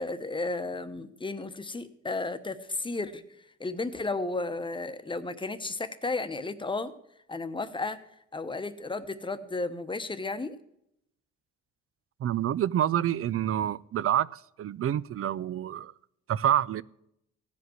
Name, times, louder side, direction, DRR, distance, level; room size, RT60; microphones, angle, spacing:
voice 1, 0.0-3.2 3.6-6.9 7.3-8.0 8.3-10.5, left 3 dB, 15° left, 11 dB, 1.0 m, -33 dB
voice 2, 12.2-15.9 16.3-16.8, right 11 dB, 50° right, 20 dB, 0.4 m, -27 dB
15.5 x 5.2 x 7.9 m, 0.78 s
cardioid pair, 90°, 30 cm